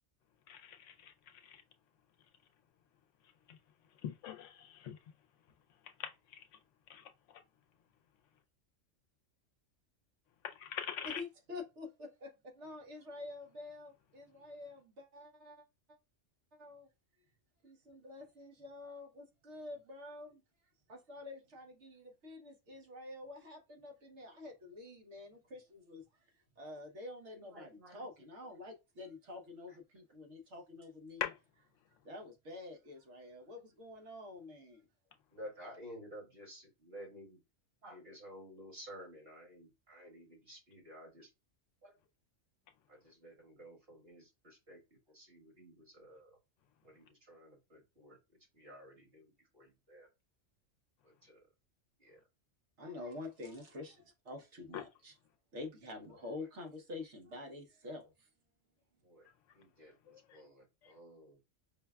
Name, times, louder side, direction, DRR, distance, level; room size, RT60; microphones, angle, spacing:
voice 1, 4.0-5.0 6.0-6.1 6.9-7.0 10.4-11.2 31.2-31.3, left 9 dB, 75° left, 0.9 m, -40 dB
voice 2, 11.0-15.6 16.5-16.9 17.6-20.4 20.9-31.3 32.0-34.9 52.8-55.2 55.5-58.3, left 2 dB, 65° right, 1.2 m, -48 dB
voice 3, 27.3-28.1 29.7-29.8 35.3-37.4 37.8-41.3 41.8-41.9 42.9-46.4 46.8-48.2 48.5-50.1 51.0-51.4 52.0-52.2 59.0-59.3 59.5-61.4, equal, 50° right, 2.0 m, -53 dB
5.5 x 2.2 x 2.2 m
omnidirectional pair, 1.3 m